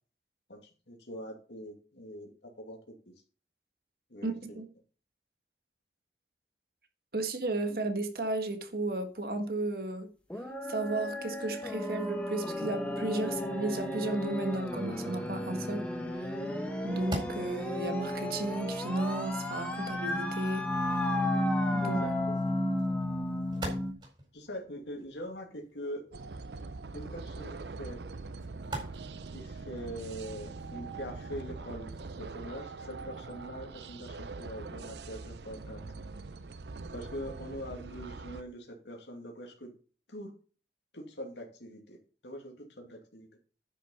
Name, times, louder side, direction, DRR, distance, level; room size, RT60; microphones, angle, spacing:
voice 1, 0.9-2.9 4.1-4.6 21.8-22.4 23.6-23.8 24.3-26.0 26.9-28.0 29.3-35.8 36.9-39.7 40.1-40.3 40.9-42.0 42.2-43.3, equal, 85° left, 2.5 m, -43 dB
voice 2, 4.2-4.6 7.1-10.1 10.7-15.9 16.2-16.3 16.8-20.7 21.7-22.0, right 2 dB, 55° right, 1.5 m, -34 dB
sound 1, 10.3-23.9, left 1 dB, 5° left, 1.5 m, -33 dB
sound 2, 16.6-34.2, right 1 dB, 30° right, 4.4 m, -48 dB
sound 3, 26.1-38.4, right 3 dB, 75° right, 0.6 m, -43 dB
10.0 x 6.2 x 5.4 m
head